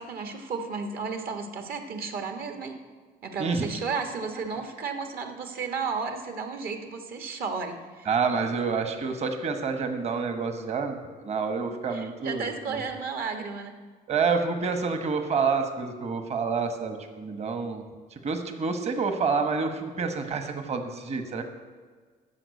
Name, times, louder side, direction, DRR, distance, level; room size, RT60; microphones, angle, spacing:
voice 1, 0.0-2.8 3.2-8.1 11.9-13.8, right 5 dB, 65° right, 5 dB, 1.3 m, -33 dB
voice 2, 8.1-12.5 14.1-17.8 18.2-21.4, right 5 dB, 40° right, 7 dB, 1.1 m, -28 dB
13.0 x 4.9 x 8.2 m, 1.5 s
cardioid pair, 110°, 17 cm